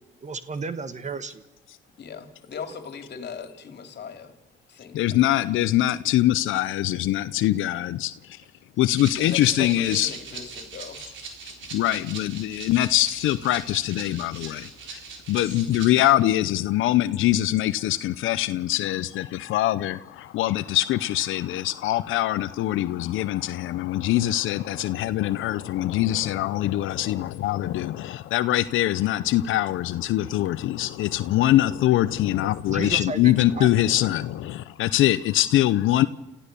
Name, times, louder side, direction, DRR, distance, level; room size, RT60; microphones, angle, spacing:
voice 1, 0.2-1.4 32.7-33.7, right 4 dB, 35° right, 1.5 m, -33 dB
voice 2, 2.0-4.3 4.7-5.2 9.2-11.1 15.8-16.0 24.7-24.9 27.0-27.2, left 6 dB, 60° left, 2.9 m, -39 dB
voice 3, 4.9-8.4 8.8-10.1 11.7-15.0 15.3-36.1, left 14 dB, 85° left, 0.7 m, -23 dB
Rattle (instrument), 9.0-16.1, right 5 dB, 70° right, 4.1 m, -40 dB
29.5 x 15.0 x 6.9 m
cardioid pair, 90°, 20 cm